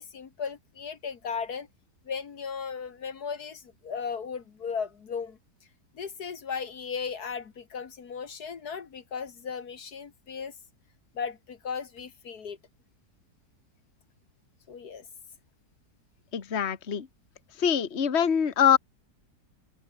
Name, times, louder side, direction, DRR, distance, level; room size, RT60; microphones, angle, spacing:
voice 1, 0.0-1.7 2.0-5.4 5.9-10.6 11.1-12.6 14.7-15.1, left 6 dB, 65° left, 2.1 m, -36 dB
voice 2, 16.3-17.1 17.6-18.8, left 8 dB, 40° left, 1.7 m, -24 dB
omnidirectional pair, 1.8 m